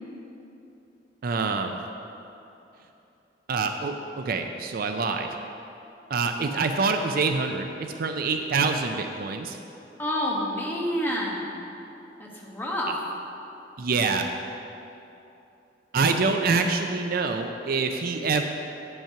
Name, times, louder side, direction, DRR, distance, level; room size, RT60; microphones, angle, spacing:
voice 1, 1.2-1.8 3.5-5.3 6.1-9.6 13.8-14.3 15.9-18.4, right 4 dB, 50° right, 5 dB, 0.4 m, -26 dB
voice 2, 10.0-11.6 12.2-12.9, equal, 10° left, -4 dB, 1.2 m, -28 dB
8.8 x 5.5 x 5.8 m, 2.9 s
head